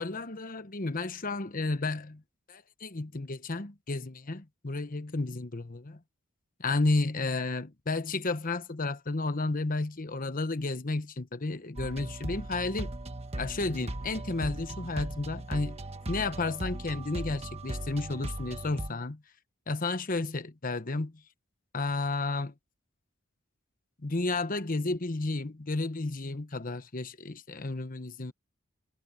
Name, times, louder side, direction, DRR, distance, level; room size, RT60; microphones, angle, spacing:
voice 1, 0.0-2.2 2.5-6.0 6.6-12.9 13.4-15.8 16.1-19.2 19.7-21.2 21.7-22.5 24.0-28.3, left 3 dB, 45° left, 1.1 m, -32 dB
sound 1, 11.8-18.9, right 1 dB, 30° right, 1.5 m, -38 dB
head